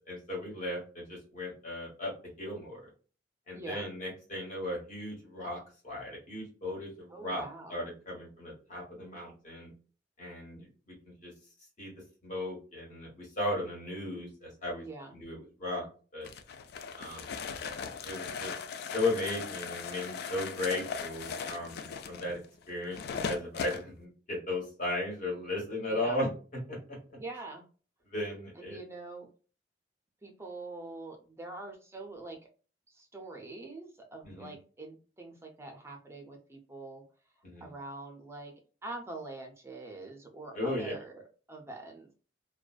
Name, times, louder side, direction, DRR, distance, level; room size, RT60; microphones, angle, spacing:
voice 1, 0.1-2.1 2.4-2.8 3.5-7.4 7.7-9.7 10.2-10.9 11.2-11.3 11.8-11.9 12.2-14.8 15.1-15.8 16.1-16.3 17.0-17.4 18.0-18.5 18.9-22.4 22.7-23.0 23.3-26.3 26.7-27.0 28.0-28.8 34.2-34.5 37.4-37.7 40.5-40.9, left 1 dB, 45° left, -4 dB, 1.4 m, -36 dB
voice 2, 3.5-3.9 7.1-7.9 14.8-15.1 25.9-26.2 27.1-27.6 28.6-29.3 30.2-32.4 32.9-37.0 37.6-38.5 38.8-42.1, right 2 dB, 15° right, 2 dB, 0.4 m, -44 dB
sound 1, 16.2-23.8, left 6 dB, 60° left, 0.3 m, -39 dB
2.5 x 2.1 x 2.3 m, 0.38 s
head